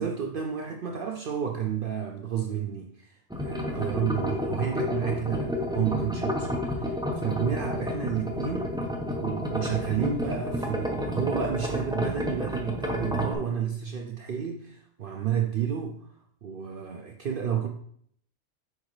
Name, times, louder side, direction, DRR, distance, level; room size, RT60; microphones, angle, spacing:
voice 1, 0.0-3.1 3.4-8.7 9.2-16.0 16.4-17.7, right 8 dB, 60° right, 3 dB, 0.7 m, -31 dB
sound 1, 3.3-13.3, left 1 dB, 5° right, 0.7 m, -31 dB
6.5 x 4.8 x 3.2 m, 0.64 s
omnidirectional pair, 1.2 m